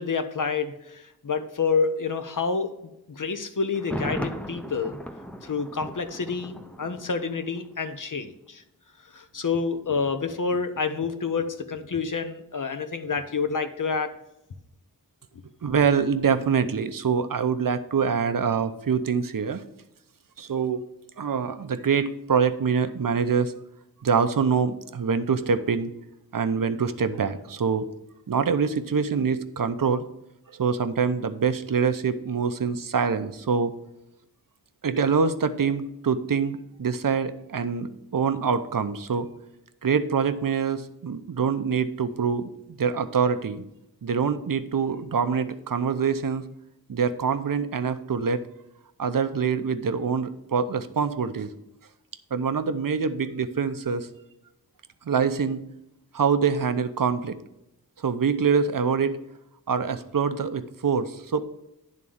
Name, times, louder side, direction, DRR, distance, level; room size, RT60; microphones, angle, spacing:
voice 1, 0.0-2.7 3.1-5.0 5.4-8.6 9.1-14.1, left 5 dB, 55° left, 9 dB, 0.8 m, -28 dB
Thunder, 3.7-7.7 7.9-8.0, equal, 5° left, 0.6 m, -36 dB
voice 2, 15.6-19.6 20.4-20.8 21.2-23.5 24.0-25.9 26.3-27.9 28.3-30.0 30.5-33.7 34.8-39.3 39.8-42.5 42.8-43.7 44.0-46.5 46.9-48.4 49.0-51.5 52.3-54.1 55.1-55.6 56.1-57.4 58.0-59.2 59.7-61.5, right 6 dB, 60° right, 10 dB, 0.7 m, -25 dB
11.0 x 3.7 x 7.1 m, 0.85 s
wide cardioid pair, 80°, 38 cm